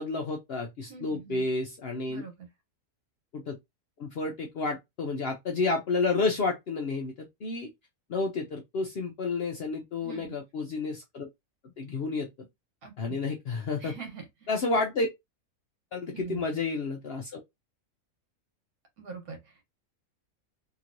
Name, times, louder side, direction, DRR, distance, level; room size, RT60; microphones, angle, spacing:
voice 1, 0.0-2.2 3.3-3.6 4.0-7.7 8.1-11.3 11.8-12.5 13.0-14.0 14.5-15.1 15.9-17.4, left 3 dB, 65° left, 0.6 m, -30 dB
voice 2, 0.9-1.5 2.1-2.5 10.0-10.4 12.8-13.2 13.8-14.2 16.1-16.4 19.0-19.6, right 6 dB, 75° right, 1.5 m, -43 dB
2.9 x 2.9 x 2.5 m
omnidirectional pair, 1.6 m